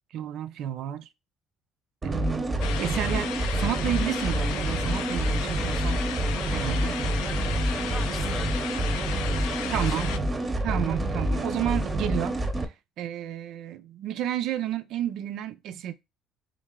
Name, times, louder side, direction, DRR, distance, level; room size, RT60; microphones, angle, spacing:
voice 1, 0.1-1.1 2.0-6.1 6.5-7.0 9.7-10.2 10.6-15.9, right 11 dB, 65° right, 0.4 m, -31 dB
sound 1, 2.0-12.6, right 1 dB, 25° right, 0.7 m, -27 dB
sound 2, 2.6-10.2, left 10 dB, 90° left, 0.4 m, -35 dB
voice 2, 7.2-8.6 9.3-10.6, left 5 dB, 35° left, 0.6 m, -44 dB
3.7 x 3.2 x 3.6 m
cardioid pair, 110°, 0 cm